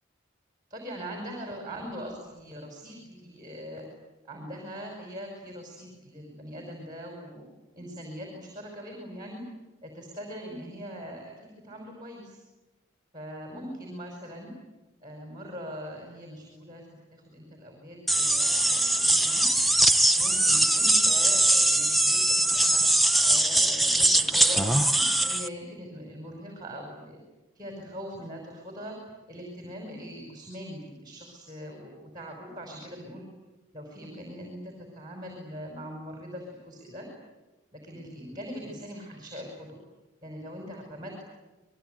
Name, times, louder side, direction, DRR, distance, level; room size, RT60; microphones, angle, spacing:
voice 1, 0.7-3.9 4.2-7.5 7.7-9.4 9.8-12.4 13.1-14.5 15.0-19.5 20.2-22.8 23.3-27.2 27.6-28.9 29.3-33.3 33.7-37.1 37.7-39.8 40.2-41.2, equal, 20° right, 1 dB, 5.3 m, -41 dB
sound 1, 18.1-25.5, right 1 dB, ahead, 0.8 m, -22 dB
28.5 x 21.5 x 9.2 m, 1.1 s
head